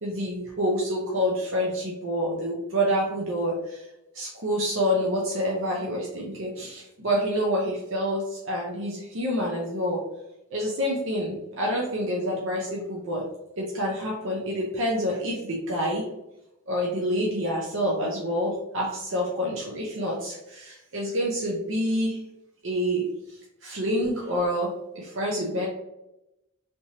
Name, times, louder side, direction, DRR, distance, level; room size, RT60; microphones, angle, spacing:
voice 1, 0.0-3.9 4.1-10.0 10.5-13.2 13.6-16.0 16.7-22.2 22.6-25.7, equal, 65° right, -3 dB, 0.7 m, -27 dB
3.4 x 2.9 x 2.8 m, 0.89 s
head